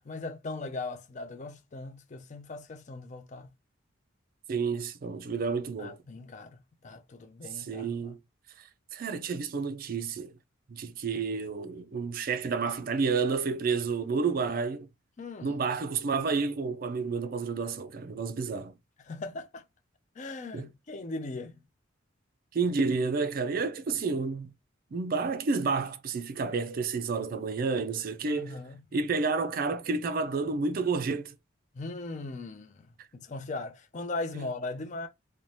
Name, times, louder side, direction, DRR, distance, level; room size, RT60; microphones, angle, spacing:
voice 1, 0.0-3.5 5.8-8.1 15.2-15.6 19.1-19.6 20.2-21.6 28.3-28.8 31.7-35.1, left 3 dB, 35° left, 0.4 m, -39 dB
voice 2, 4.5-6.0 7.5-8.2 8.6-10.3 10.7-14.9 15.4-18.8 20.5-20.7 22.5-24.5 24.9-28.6 28.9-31.3 34.3-34.4, right 4 dB, 45° right, 0.4 m, -30 dB
2.6 x 2.1 x 3.2 m
head